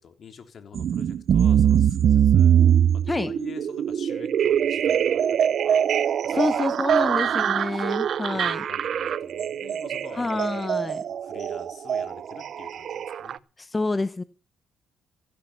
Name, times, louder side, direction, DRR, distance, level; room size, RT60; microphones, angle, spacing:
voice 1, 0.0-2.6 2.9-6.6 7.0-10.8 11.1-13.4, left 6 dB, 55° left, 3.5 m, -47 dB
sound 1, 0.7-13.4, right 9 dB, 60° right, 0.7 m, -23 dB
voice 2, 6.3-8.6 10.1-11.0 13.6-14.2, left 2 dB, 20° left, 1.0 m, -27 dB
15.5 x 12.0 x 6.0 m
cardioid pair, 90°, 0 cm